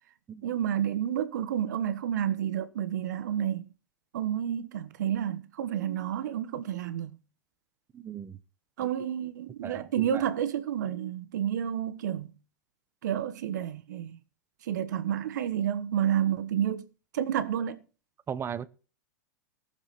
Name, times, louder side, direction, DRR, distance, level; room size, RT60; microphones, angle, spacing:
voice 1, 0.4-3.6 4.1-7.2 8.8-12.3 13.0-14.2 14.6-16.9 17.1-17.8, right 10 dB, 70° right, 1.4 m, -30 dB
voice 2, 7.9-8.4 9.6-10.2 18.3-18.7, right 8 dB, 25° right, 0.9 m, -37 dB
18.0 x 7.0 x 4.3 m
hypercardioid pair, 100°, 10 cm